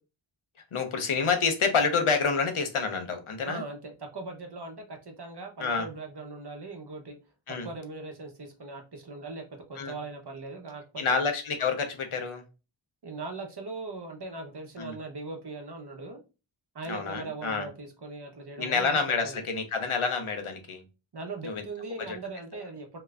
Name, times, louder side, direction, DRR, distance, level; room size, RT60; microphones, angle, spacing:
voice 1, 0.7-3.6 5.6-5.9 7.5-7.7 9.8-9.9 11.0-12.4 14.8-14.9 16.9-17.7 18.6-20.8 21.4-21.6 22.0-22.2, left 5 dB, 85° left, 0.8 m, -28 dB
voice 2, 3.4-7.2 7.5-11.2 13.0-16.2 16.7-19.4 21.1-23.0, right 3 dB, 55° right, 0.9 m, -40 dB
3.2 x 2.9 x 2.4 m
wide cardioid pair, 45°, 48 cm